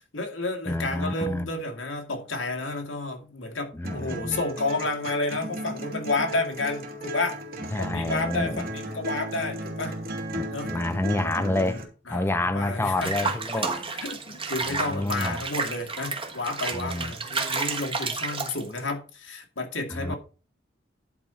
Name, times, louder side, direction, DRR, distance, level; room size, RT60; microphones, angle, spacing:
voice 1, 0.1-7.4 7.8-9.9 10.5-10.7 12.1-20.2, left 2 dB, 90° left, 2.3 m, -31 dB
voice 2, 0.7-1.5 3.7-4.4 7.7-8.7 10.3-11.8 12.1-13.7 14.7-15.4 16.7-17.1 19.9-20.2, left 2 dB, 10° left, 0.5 m, -28 dB
sound 1, 3.8-11.8, right 1 dB, 50° right, 2.7 m, -35 dB
Water / Bathtub (filling or washing), 13.0-18.9, right 4 dB, 30° right, 1.4 m, -31 dB
11.0 x 4.4 x 5.7 m
head